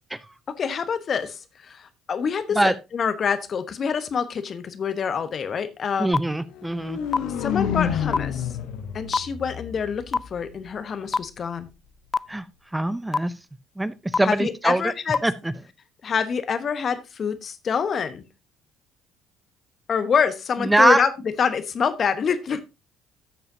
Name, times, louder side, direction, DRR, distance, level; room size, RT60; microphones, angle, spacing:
voice 1, 0.6-6.2 7.4-8.5 8.9-11.7 14.2-15.2 16.0-18.2 19.9-21.1 21.4-22.6, left 6 dB, 45° left, 12 dB, 1.1 m, -26 dB
voice 2, 6.0-7.0 12.3-12.5 12.7-13.3 13.8-14.9 15.2-15.5 20.6-21.0, right 1 dB, 10° right, 15 dB, 0.6 m, -22 dB
sound 1, 6.1-6.2 7.1-7.2 8.1-8.2 9.1-9.2 10.1-10.2 11.1-11.2 12.1-12.2 13.1-13.2 14.1-14.2 15.1-15.2, left 4 dB, 30° left, 0.4 m, -20 dB
sound 2, 6.5-10.6, left 8 dB, 65° left, 1.1 m, -29 dB
13.0 x 6.9 x 2.7 m, 0.25 s
hypercardioid pair, 55°, 0 cm